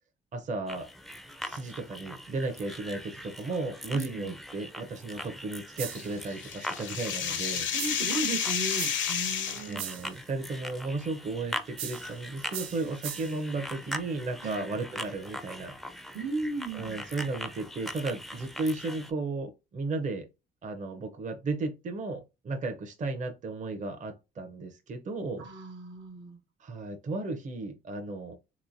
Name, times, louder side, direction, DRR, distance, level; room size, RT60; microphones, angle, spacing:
voice 1, 0.3-0.9 1.4-7.7 9.5-15.7 16.7-20.3 20.6-25.5 26.6-28.4, right 3 dB, 40° right, 0.6 m, -34 dB
sound 1, 0.7-19.1, equal, ahead, 0.4 m, -42 dB
voice 2, 3.9-4.4 7.3-7.4 7.7-10.0 14.4-14.7 16.1-17.0 25.4-26.4, right 3 dB, 70° right, 1.0 m, -36 dB
sound 2, 5.8-6.2 7.8-8.2 8.8-9.2 9.8-10.2 11.8-12.2 12.5-13.4, right 9 dB, 90° right, 0.6 m, -39 dB
sound 3, 5.9-9.7, left 8 dB, 70° left, 0.7 m, -31 dB
3.3 x 2.9 x 2.5 m
cardioid pair, 90°, 20 cm